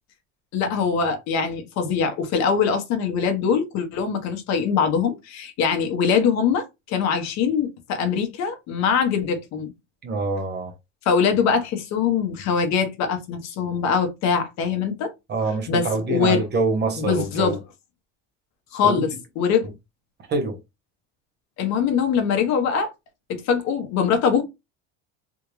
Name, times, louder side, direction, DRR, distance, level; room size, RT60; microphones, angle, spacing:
voice 1, 0.5-9.7 11.0-15.1 15.7-16.4 17.0-17.6 18.7-19.7 21.6-22.9 23.3-24.4, left 6 dB, 60° left, 1.1 m, -23 dB
voice 2, 10.0-10.7 15.3-17.6 18.8-19.0 20.3-20.6, right 3 dB, 30° right, 0.9 m, -25 dB
3.6 x 2.5 x 3.1 m
cardioid pair, 145°, 32 cm